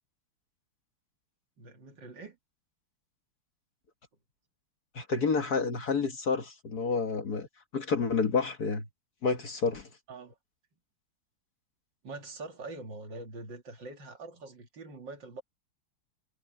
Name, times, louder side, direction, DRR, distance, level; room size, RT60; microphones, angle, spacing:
voice 1, 1.6-2.4 10.1-10.4 12.0-15.4, right 3 dB, 55° right, 2.9 m, -44 dB
voice 2, 5.0-7.5 7.7-8.9 9.2-9.9, left 4 dB, 50° left, 1.9 m, -29 dB
omnidirectional pair, 2.4 m